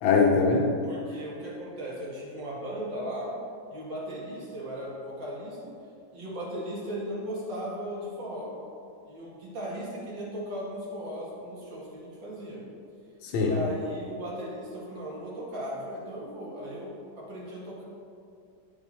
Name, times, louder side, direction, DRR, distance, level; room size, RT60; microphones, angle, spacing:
voice 1, 0.0-0.8 13.3-13.5, left 4 dB, 90° left, -1 dB, 1.6 m, -21 dB
voice 2, 0.8-3.3 3.7-5.7 6.1-8.5 9.1-12.6 13.4-17.8, equal, 70° right, -7 dB, 2.7 m, -37 dB
9.5 x 7.2 x 4.2 m, 2.4 s
omnidirectional pair, 2.1 m